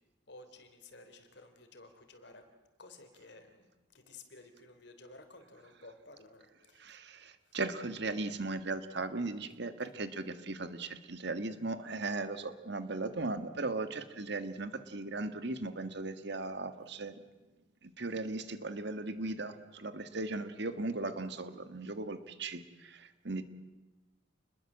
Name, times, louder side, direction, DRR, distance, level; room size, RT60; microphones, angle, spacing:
voice 1, 0.3-2.5 2.8-3.7 3.9-6.9 7.5-7.6, left 2 dB, 65° left, 7 dB, 3.5 m, -54 dB
voice 2, 6.8-17.1 17.8-23.4, right 2 dB, 65° right, 10 dB, 1.8 m, -37 dB
29.0 x 21.5 x 7.5 m, 1.1 s
head